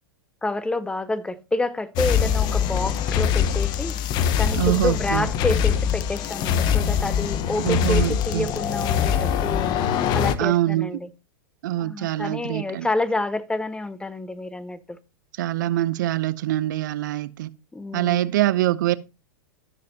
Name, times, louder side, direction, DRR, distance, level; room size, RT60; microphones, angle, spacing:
voice 1, 0.4-3.9 4.4-9.7 10.1-11.1 11.8-15.0 17.7-18.3, left 2 dB, 10° left, 0.8 m, -28 dB
sound 1, 2.0-10.3, left 8 dB, 40° left, 1.0 m, -23 dB
voice 2, 4.6-5.3 7.6-8.5 10.4-11.0 11.6-12.9 15.4-17.5 17.9-19.0, right 14 dB, 65° right, 0.6 m, -24 dB
16.0 x 6.5 x 2.8 m
hypercardioid pair, 105°, 11 cm